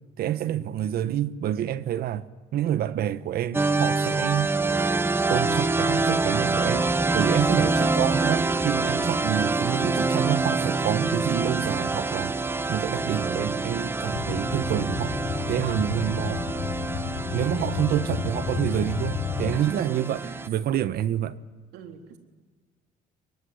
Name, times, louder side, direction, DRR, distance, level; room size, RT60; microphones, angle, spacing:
voice 1, 0.2-2.2 2.5-4.5 5.3-12.3 12.7-15.2 15.5-16.4 17.3-21.4, right 11 dB, 65° right, 1.1 m, -28 dB
sound 1, 3.5-20.5, right 3 dB, 15° right, 0.9 m, -26 dB
sound 2, 14.1-19.6, left 9 dB, 45° left, 1.1 m, -32 dB
voice 2, 17.4-17.8 19.5-20.5 21.7-22.2, right 6 dB, 80° right, 3.6 m, -41 dB
23.0 x 23.0 x 10.0 m
cardioid pair, 110°, 17 cm